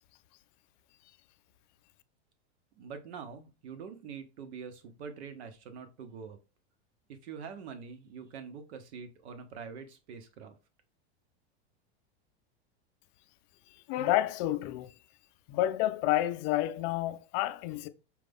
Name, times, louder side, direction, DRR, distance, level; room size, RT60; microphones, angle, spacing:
voice 1, 2.8-6.4 7.1-10.5, right 6 dB, 85° right, 1.0 m, -45 dB
voice 2, 13.9-14.9 15.5-17.9, left 14 dB, 45° left, 0.4 m, -29 dB
4.8 x 2.3 x 3.5 m
supercardioid pair, 135°, 32 cm